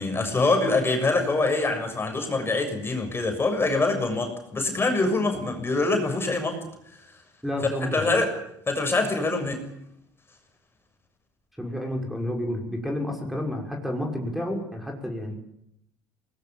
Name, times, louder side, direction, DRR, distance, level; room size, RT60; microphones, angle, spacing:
voice 1, 0.0-6.6 7.8-8.4 8.7-9.6, left 3 dB, 25° left, 5 dB, 6.8 m, -24 dB
voice 2, 7.4-8.0 11.6-15.3, left 1 dB, ahead, 2 dB, 6.3 m, -30 dB
23.0 x 20.5 x 8.9 m, 0.77 s
supercardioid pair, 75°, 10 cm